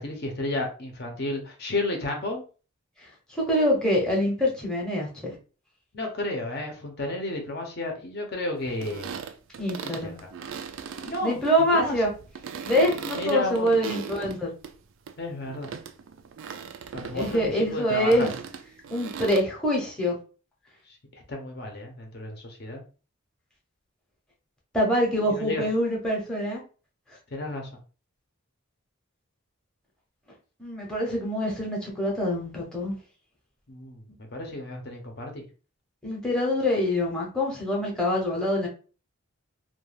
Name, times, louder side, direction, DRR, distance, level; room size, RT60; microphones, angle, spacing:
voice 1, 0.0-2.4 5.9-9.1 9.8-10.3 11.0-11.4 11.7-12.0 13.1-13.7 15.2-15.7 16.9-18.3 21.1-22.8 25.3-25.6 27.3-27.7 33.7-34.0 34.3-35.4, left 2 dB, 50° left, 3 dB, 0.5 m, -32 dB
voice 2, 3.3-5.3 9.6-10.2 11.2-12.1 12.7-14.5 17.1-18.3 18.9-20.2 24.7-26.6 30.6-33.0 36.0-38.7, equal, 5° left, -3 dB, 0.6 m, -25 dB
sound 1, 8.7-14.7 15.1-19.4, right 6 dB, 60° right, 0.3 m, -38 dB
2.3 x 2.2 x 3.2 m, 0.36 s
head